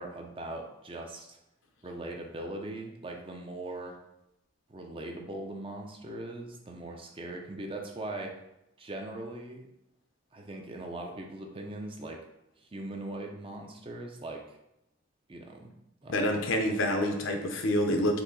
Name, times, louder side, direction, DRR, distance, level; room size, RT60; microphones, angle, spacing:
voice 1, 0.0-1.4 1.8-4.0 4.7-8.4 8.8-9.7 10.3-12.2 12.6-14.6 15.3-15.7 16.0-16.4, right 2 dB, 25° right, 2 dB, 0.5 m, -40 dB
voice 2, 16.1-18.2, left 1 dB, 75° left, 4 dB, 0.7 m, -27 dB
4.7 x 2.7 x 3.9 m, 0.86 s
head